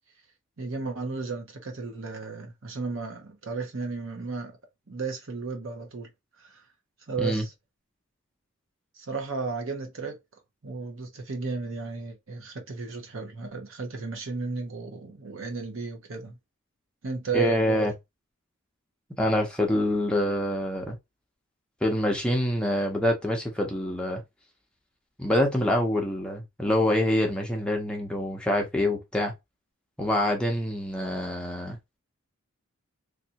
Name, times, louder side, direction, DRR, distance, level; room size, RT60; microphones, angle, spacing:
voice 1, 0.6-4.6 4.9-6.1 6.4-6.6 7.1-7.5 9.0-10.2 10.6-16.3 17.0-17.9, right 4 dB, 65° right, 1.0 m, -34 dB
voice 2, 17.3-17.9 19.2-21.0 21.8-24.2 25.2-29.3 30.0-31.8, left 1 dB, 5° left, 0.7 m, -26 dB
3.3 x 2.7 x 2.8 m
head